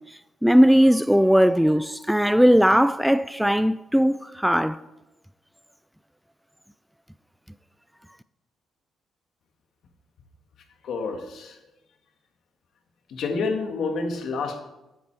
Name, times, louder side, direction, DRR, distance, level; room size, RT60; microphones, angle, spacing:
voice 1, 0.4-4.8, equal, ahead, 0.3 m, -18 dB
voice 2, 10.8-11.6 13.1-14.6, left 4 dB, 70° left, 1.7 m, -28 dB
10.5 x 9.4 x 4.7 m
cardioid pair, 90°, 0 cm